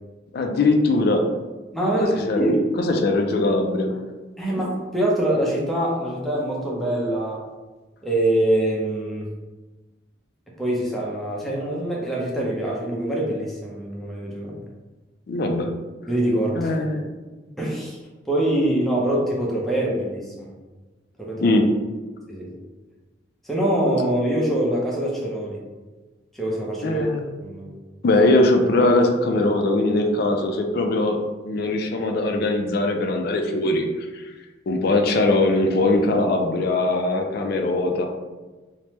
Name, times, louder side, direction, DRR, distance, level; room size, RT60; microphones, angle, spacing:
voice 1, 0.3-1.2 2.2-3.9 15.3-15.7 16.6-17.0 21.4-21.7 26.8-27.3 28.0-34.3 34.7-38.1, left 2 dB, 55° left, 4 dB, 0.3 m, -21 dB
voice 2, 1.7-2.7 4.4-7.4 8.0-9.3 10.6-14.6 16.1-16.8 17.6-18.0 18.3-20.5 21.2-21.5 22.3-22.6 23.4-25.6 26.3-27.0 27.4-27.7, right 1 dB, ahead, -5 dB, 0.5 m, -24 dB
3.2 x 2.1 x 2.8 m, 1.2 s
head